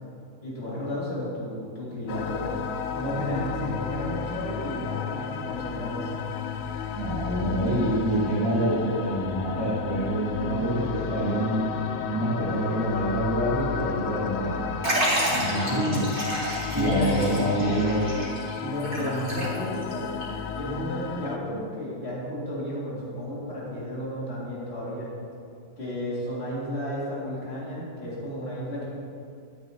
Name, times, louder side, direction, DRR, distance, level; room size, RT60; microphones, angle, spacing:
voice 1, 0.4-2.5 2.9-6.1 15.5-16.1 16.7-17.4 18.6-20.1 20.5-25.1 25.8-28.9, equal, 45° left, -8 dB, 2.9 m, -32 dB
sound 1, 2.1-21.4, left 7 dB, 70° left, 0.9 m, -33 dB
voice 2, 7.0-11.6 12.0-14.6 15.2-16.0 16.8-18.1, right 1 dB, 20° right, -10 dB, 1.8 m, -26 dB
Liquid, 14.8-19.9 20.2-20.3 21.2-21.3, right 1 dB, 35° right, 3.1 m, -30 dB
13.0 x 9.8 x 3.0 m, 2.4 s
omnidirectional pair, 1.5 m